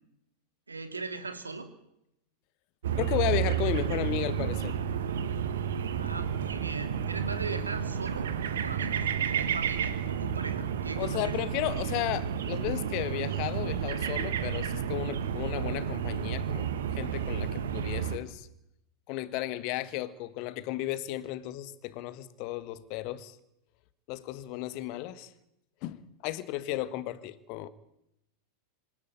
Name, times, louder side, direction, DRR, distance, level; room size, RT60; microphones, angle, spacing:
voice 1, 0.7-1.7 5.9-11.4, right 3 dB, 80° right, 2.4 m, -39 dB
sound 1, 2.8-18.2, right 8 dB, 60° right, 1.8 m, -31 dB
voice 2, 3.0-4.7 11.0-18.5 19.1-23.4 24.1-25.3 25.8-27.7, left 15 dB, 45° left, 1.6 m, -34 dB
26.5 x 13.0 x 9.5 m
figure-of-eight pair, 90°, 0 cm